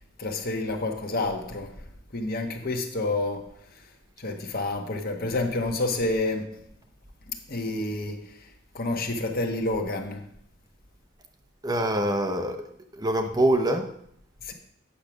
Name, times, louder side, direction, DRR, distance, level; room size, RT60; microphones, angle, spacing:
voice 1, 0.2-1.7 2.1-3.5 4.2-6.6 7.5-8.2 8.7-10.2 14.4-14.5, left 2 dB, 45° left, 1.3 m, -29 dB
voice 2, 11.6-12.7 12.9-13.9, right 1 dB, 20° right, 0.7 m, -24 dB
8.6 x 6.5 x 6.0 m
head